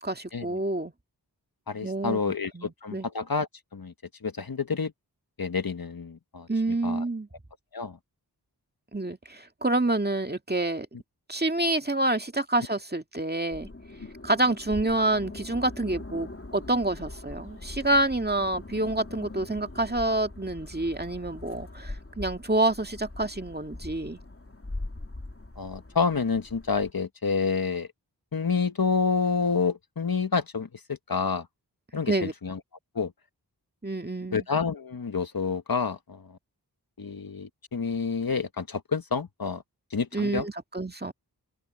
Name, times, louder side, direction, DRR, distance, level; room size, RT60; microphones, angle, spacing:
voice 1, 0.0-0.9 1.8-2.2 2.5-3.1 6.5-7.3 8.9-10.9 11.3-13.7 14.2-24.2 32.1-32.3 33.8-34.4 40.1-41.1, right 2 dB, 25° right, 2.0 m, -28 dB
voice 2, 1.7-3.9 4.2-4.9 5.4-7.0 7.7-8.0 25.6-27.9 28.3-31.5 31.9-32.6 32.9-33.1 34.3-36.4 37.0-39.6 39.9-40.4, left 5 dB, 55° left, 1.3 m, -29 dB
sound 1, 13.5-26.9, left 2 dB, 30° left, 2.8 m, -42 dB
wide cardioid pair, 40°, 42 cm